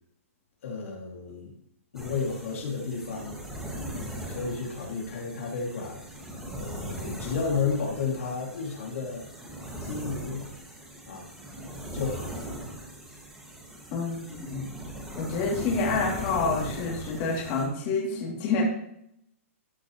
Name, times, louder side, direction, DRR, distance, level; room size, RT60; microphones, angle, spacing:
voice 1, 0.6-1.5 1.9-3.4 4.3-6.0 6.5-9.3 9.8-10.5 11.1-11.3 11.9-12.4, left 5 dB, 65° left, -1 dB, 2.5 m, -32 dB
sound 1, 1.9-17.7, equal, 5° right, 1.9 m, -39 dB
voice 2, 13.9-14.6 15.2-18.6, left 4 dB, 35° left, -2 dB, 2.8 m, -28 dB
13.0 x 6.6 x 3.1 m, 0.74 s
hypercardioid pair, 150°, 8 cm